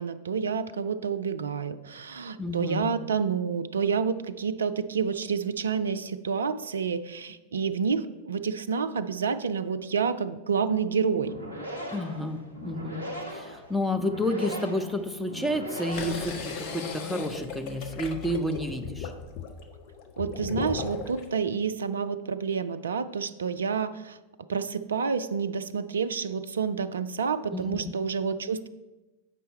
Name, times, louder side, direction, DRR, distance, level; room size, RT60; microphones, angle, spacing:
voice 1, 0.0-11.3 20.2-24.2 24.5-28.7, right 6 dB, 70° right, 12 dB, 0.4 m, -29 dB
voice 2, 2.4-2.9 11.9-13.0 13.3-19.1 27.5-28.0, left 1 dB, ahead, 5 dB, 0.6 m, -30 dB
sound 1, 11.1-16.8, equal, 90° left, 1.3 m, -39 dB
sound 2, 15.9-21.3, left 6 dB, 45° left, 0.9 m, -37 dB
8.1 x 5.6 x 4.2 m, 1.1 s
figure-of-eight pair, 90°, 0 cm